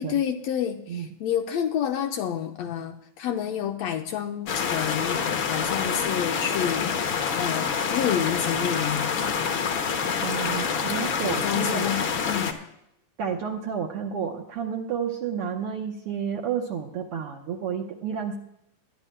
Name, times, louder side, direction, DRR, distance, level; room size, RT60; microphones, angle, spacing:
voice 1, 0.0-9.1 11.2-12.6, left 9 dB, 75° left, 5 dB, 1.6 m, -29 dB
sound 1, 4.5-12.5, left 6 dB, 60° left, 1.3 m, -27 dB
voice 2, 10.2-11.9 13.2-18.4, right 7 dB, 65° right, 2 dB, 1.5 m, -31 dB
21.5 x 11.0 x 2.2 m, 0.80 s
omnidirectional pair, 3.4 m